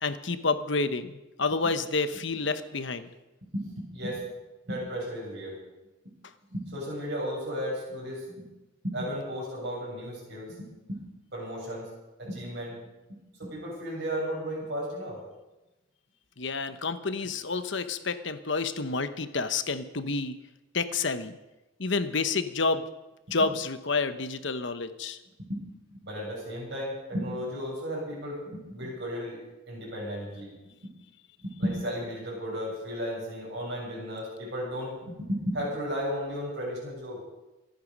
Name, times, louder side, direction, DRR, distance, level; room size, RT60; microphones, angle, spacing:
voice 1, 0.0-3.1 16.4-20.4 20.7-21.4 21.8-22.8 23.3-25.2, left 4 dB, 60° left, 10 dB, 1.1 m, -29 dB
voice 2, 3.5-4.2 4.7-5.6 6.5-8.5 8.8-11.0 11.3-11.9 12.2-12.8 13.4-15.2 25.4-25.6 25.9-29.4 29.7-30.5 30.8-30.9 31.4-37.2, equal, 55° right, -5 dB, 7.5 m, -34 dB
27.5 x 9.3 x 5.4 m, 1.0 s
head